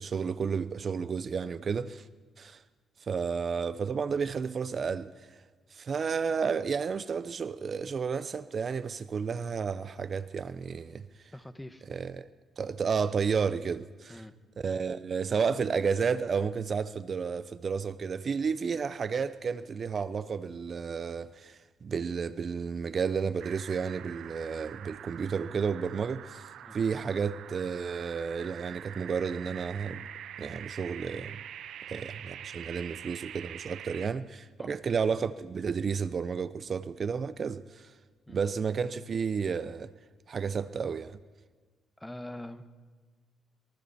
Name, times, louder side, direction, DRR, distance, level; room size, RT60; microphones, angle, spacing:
voice 1, 0.0-2.1 2.4-2.6 3.0-5.4 5.7-11.3 11.9-12.3 12.6-14.2 14.6-30.1 30.4-31.4 31.9-37.9 38.3-39.9 40.3-41.2, right 6 dB, 45° right, 0.7 m, -32 dB
voice 2, 11.3-11.8 14.1-14.3 14.7-14.8 26.6-26.8 34.6-34.7 38.3-38.4 42.0-42.7, left 1 dB, 10° left, 1.5 m, -44 dB
sound 1, 23.4-34.1, right 10 dB, 75° right, 0.9 m, -45 dB
26.5 x 23.0 x 4.3 m
cardioid pair, 90°, 0 cm